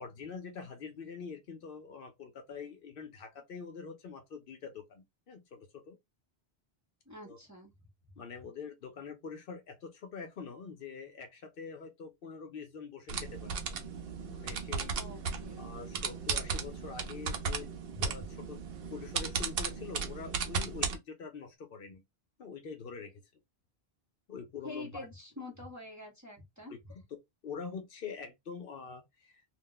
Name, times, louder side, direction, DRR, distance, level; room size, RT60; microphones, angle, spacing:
voice 1, 0.0-6.0 7.2-7.4 8.2-13.6 14.2-15.0 15.5-17.7 18.0-18.2 18.5-18.6 18.9-22.0 22.4-23.2 24.3-25.1 26.7-26.8 27.4-29.4, left 5 dB, 65° left, 0.8 m, -45 dB
voice 2, 7.1-7.7 14.9-15.7 17.9-18.1 24.6-26.9, left 2 dB, 20° right, 0.8 m, -46 dB
sound 1, 13.1-21.0, right 5 dB, 70° right, 0.8 m, -36 dB
2.4 x 2.2 x 3.6 m
omnidirectional pair, 1.0 m